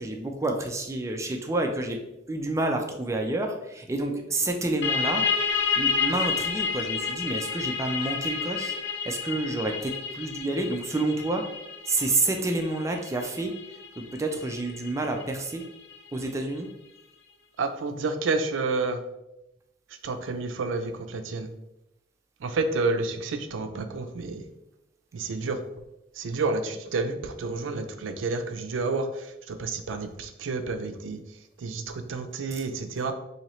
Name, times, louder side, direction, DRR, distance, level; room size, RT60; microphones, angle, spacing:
voice 1, 0.0-2.0 2.3-5.2 5.8-8.8 9.1-11.5 11.9-13.5 14.0-15.7 16.1-16.7, right 2 dB, 15° right, 3 dB, 0.3 m, -29 dB
sound 1, 4.8-16.2, left 5 dB, 60° left, 0.4 m, -30 dB
voice 2, 17.6-19.0 20.0-21.5 22.4-24.5 25.1-25.6 26.2-29.1 29.5-31.2 31.6-33.1, right 3 dB, 85° right, 7 dB, 0.4 m, -29 dB
4.1 x 2.8 x 3.0 m, 0.90 s
head